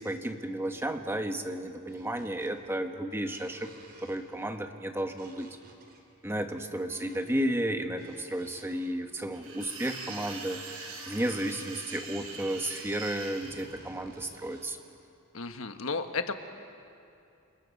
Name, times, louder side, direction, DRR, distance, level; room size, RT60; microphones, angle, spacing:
voice 1, 0.0-3.7 4.0-5.5 6.2-14.8, right 1 dB, 10° right, 5 dB, 1.4 m, -33 dB
sound 1, 1.9-2.7 3.0-4.4 5.2-6.0 6.9-7.4 7.8-9.1 10.4-11.3 11.8-14.9, right 2 dB, 45° right, 3.7 m, -55 dB
sound 2, 9.3-13.6, right 4 dB, 80° right, 5.1 m, -42 dB
voice 2, 15.3-16.3, left 4 dB, 70° left, 7 dB, 1.3 m, -33 dB
30.0 x 28.0 x 5.4 m, 2.6 s
head